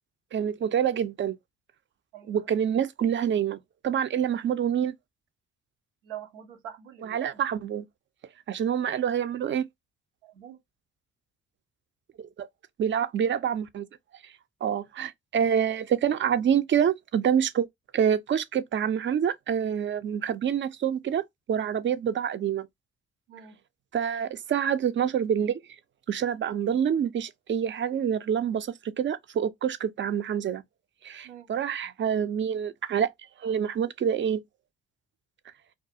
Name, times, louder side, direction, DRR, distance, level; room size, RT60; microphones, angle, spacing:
voice 1, 0.3-1.4 2.3-3.6 3.8-4.9 7.0-7.9 8.5-9.6 12.2-12.5 12.8-13.9 14.6-17.7 17.9-21.2 21.5-22.7 23.9-25.6 26.1-30.6 31.0-33.1 33.4-34.4, right 8 dB, 35° right, 0.4 m, -27 dB
voice 2, 2.1-2.5 6.0-7.4 10.2-10.6 23.3-23.6 31.2-31.5, right 10 dB, 90° right, 0.6 m, -44 dB
2.4 x 2.3 x 2.6 m
hypercardioid pair, 50°, 34 cm